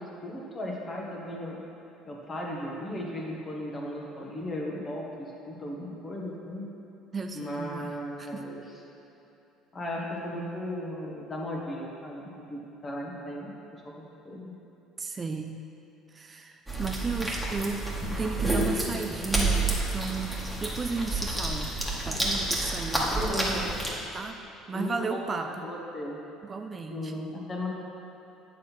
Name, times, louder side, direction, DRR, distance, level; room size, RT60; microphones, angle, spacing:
voice 1, 0.0-1.6 2.0-6.6 7.3-8.6 9.7-13.9 14.3-14.4 23.1-23.7 24.7-26.2 26.9-27.7, left 1 dB, 30° left, -2 dB, 1.6 m, -36 dB
voice 2, 7.1-8.4 15.0-15.6 16.1-17.9 18.2-21.7 22.0-23.7 24.1-24.4 24.7-25.7 26.4-27.1, right 4 dB, 30° right, 5 dB, 0.4 m, -35 dB
sound 1, 16.7-23.9, right 2 dB, ahead, 1.8 m, -29 dB
9.5 x 4.1 x 6.0 m, 2.9 s
figure-of-eight pair, 60°, 0 cm